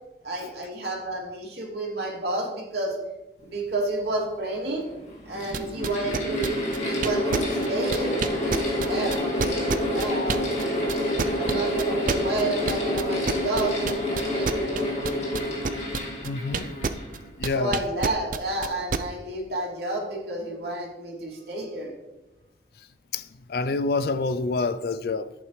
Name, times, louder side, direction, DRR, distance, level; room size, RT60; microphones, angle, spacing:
voice 1, 0.2-2.9 3.4-4.9 5.3-6.5 6.9-10.9 11.4-14.9 17.5-21.9, right 2 dB, 65° right, 2.8 m, -30 dB
Mechanical fan, 4.1-4.2 5.0-17.7, left 1 dB, 35° left, 2.3 m, -28 dB
sound 1, 5.5-10.6 10.9-17.2 17.4-19.0, right 5 dB, 50° right, 0.4 m, -27 dB
voice 2, 16.2-16.7 17.4-17.8 23.1-25.3, left 3 dB, 55° left, 0.4 m, -27 dB
11.0 x 8.6 x 3.2 m
head